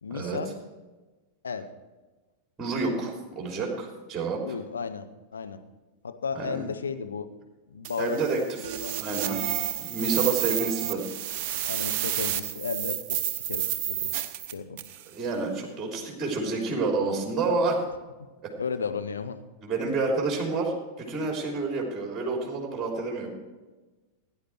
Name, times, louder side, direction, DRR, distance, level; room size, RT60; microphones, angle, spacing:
voice 1, 0.0-0.5 1.4-1.7 4.4-5.6 6.0-7.3 7.7-8.2 8.8-9.0 9.5-10.1 11.7-14.1 14.5-14.8 18.6-19.4, left 5 dB, 70° left, 8 dB, 0.9 m, -34 dB
voice 2, 2.6-4.4 6.3-6.7 8.0-8.4 9.0-9.4 9.8-11.0 15.1-17.8 18.4-18.5 19.6-23.3, right 3 dB, 20° right, 0 dB, 3.3 m, -29 dB
sound 1, 7.8-15.0, right 11 dB, 45° right, 0.8 m, -30 dB
16.5 x 10.0 x 4.6 m, 1.2 s
figure-of-eight pair, 90°, 0 cm